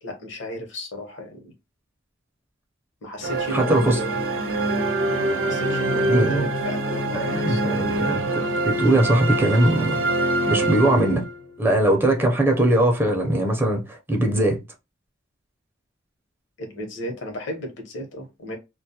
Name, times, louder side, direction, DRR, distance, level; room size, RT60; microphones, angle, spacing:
voice 1, 0.0-1.5 3.0-4.2 5.3-7.8 10.5-10.6 14.3-14.4 16.6-18.6, left 1 dB, 70° left, 0.8 m, -34 dB
sound 1, 3.2-11.6, right 2 dB, 85° right, 0.5 m, -25 dB
voice 2, 3.5-4.0 6.1-6.5 7.1-8.3 8.6-10.0 10.5-11.2 11.6-14.6, right 1 dB, 10° right, 0.5 m, -20 dB
sound 2, 4.9-10.9, left 5 dB, 40° left, 0.5 m, -36 dB
2.2 x 2.0 x 2.7 m
head